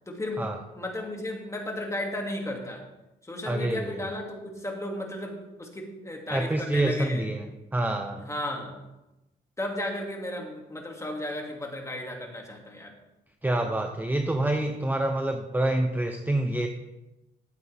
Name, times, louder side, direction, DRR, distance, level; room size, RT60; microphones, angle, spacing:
voice 1, 0.1-0.5 0.7-2.8 3.2-7.2 8.2-8.7 9.6-12.9, left 1 dB, 15° left, 1 dB, 2.3 m, -34 dB
voice 2, 3.5-4.0 6.3-8.3 13.4-16.7, right 1 dB, 10° right, 5 dB, 0.8 m, -27 dB
12.5 x 8.4 x 3.5 m, 0.98 s
cardioid pair, 90°, 20 cm